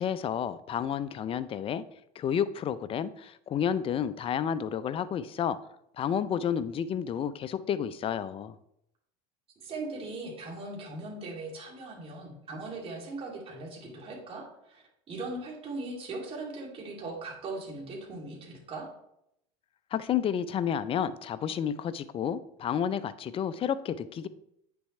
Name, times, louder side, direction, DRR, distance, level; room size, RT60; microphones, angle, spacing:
voice 1, 0.0-1.8 2.2-5.6 6.0-8.6 19.9-24.3, left 8 dB, 35° left, 0.5 m, -30 dB
voice 2, 9.6-18.9, right 2 dB, 35° right, 2.8 m, -39 dB
9.0 x 6.9 x 3.2 m
supercardioid pair, 105°, 16 cm